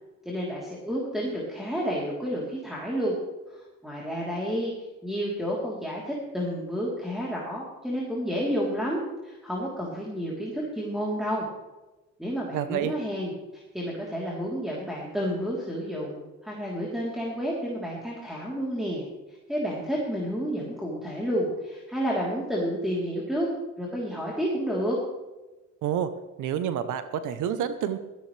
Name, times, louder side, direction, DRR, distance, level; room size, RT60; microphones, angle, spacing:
voice 1, 0.3-3.2 3.5-4.7 5.0-11.5 12.2-23.5 23.8-25.0, equal, ahead, -6 dB, 3.5 m, -30 dB
voice 2, 12.5-12.9 25.8-26.1 26.4-28.0, right 9 dB, 90° right, 11 dB, 0.9 m, -28 dB
16.0 x 14.5 x 3.3 m, 1.1 s
cardioid pair, 90°, 30 cm